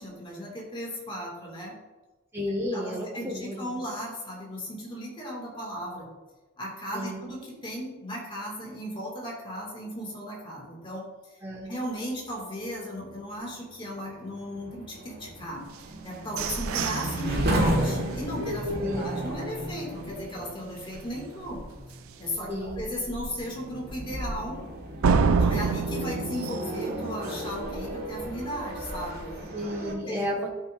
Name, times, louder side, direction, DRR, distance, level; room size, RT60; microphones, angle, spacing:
voice 1, 0.0-1.7 2.7-6.1 6.6-11.0 11.7-21.6 22.2-24.6 25.4-29.7 30.1-30.2, equal, 25° left, -2 dB, 2.0 m, -36 dB
voice 2, 2.3-3.8 6.9-7.2 11.4-11.7 18.8-19.1 22.5-22.8 29.5-30.5, left 1 dB, 10° right, -4 dB, 1.4 m, -32 dB
sound 1, 12.9-29.9, right 1 dB, 50° right, 1.5 m, -34 dB
sound 2, 15.7-19.6 20.1-20.2 20.6-21.0 21.3-21.4 21.9-22.0 25.0-27.7, right 5 dB, 85° right, 0.5 m, -29 dB
12.5 x 5.5 x 2.5 m, 1.2 s
head